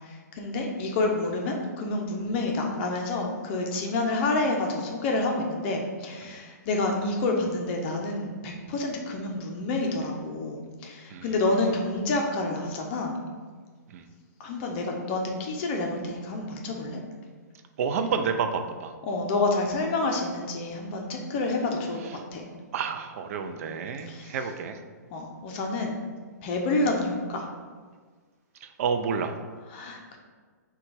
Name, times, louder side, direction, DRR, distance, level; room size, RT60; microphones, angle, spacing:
voice 1, 0.4-13.2 14.4-17.0 19.1-22.4 24.1-24.3 25.1-26.0 26.4-27.5 29.7-30.2, left 2 dB, 40° left, 1 dB, 0.6 m, -28 dB
voice 2, 11.1-11.4 13.9-14.1 17.8-18.9 22.0-22.2 22.7-24.8 28.6-29.4, right 6 dB, 50° right, 7 dB, 0.4 m, -30 dB
3.8 x 2.3 x 4.5 m, 1.5 s
hypercardioid pair, 140°, 10 cm